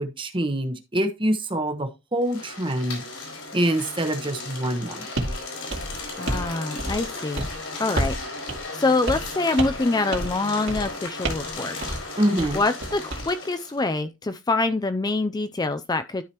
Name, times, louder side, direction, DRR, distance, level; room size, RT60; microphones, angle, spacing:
voice 1, 0.0-3.0 3.5-5.0 12.2-12.6, right 1 dB, 25° right, 1.1 m, -25 dB
sound 1, 2.2-13.8, left 3 dB, 75° left, 4.3 m, -36 dB
sound 2, 5.2-5.4 5.7-6.5 6.8-7.1 7.4-7.6 8.0-8.2 8.5-8.6 9.1-9.3 9.6-9.9 10.1-10.4 10.7-10.9 11.2-11.5 11.8-12.0 12.4-13.3, right 1 dB, 60° right, 2.5 m, -29 dB
voice 2, 6.2-7.5 7.8-8.1 8.7-12.0 12.5-16.2, left 3 dB, 20° left, 0.4 m, -25 dB
12.5 x 4.9 x 3.0 m
head